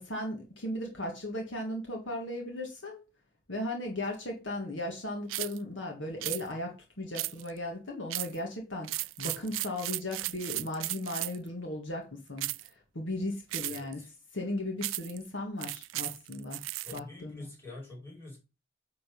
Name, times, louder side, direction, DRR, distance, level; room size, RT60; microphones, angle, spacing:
voice 1, 0.0-3.0 3.5-12.5 13.0-14.0 14.3-16.6 16.9-17.5, left 1 dB, 65° left, 1.7 m, -36 dB
sound 1, 5.3-5.6 6.2-6.4 7.1-7.6 8.1-8.4 8.8-11.5 12.4-12.7 13.5-13.9 14.8-15.2 15.6-17.0, right 19 dB, 75° right, 0.3 m, -35 dB
voice 2, 13.6-14.1 16.8-18.4, left 2 dB, 10° left, 5.0 m, -46 dB
9.7 x 4.0 x 5.3 m
head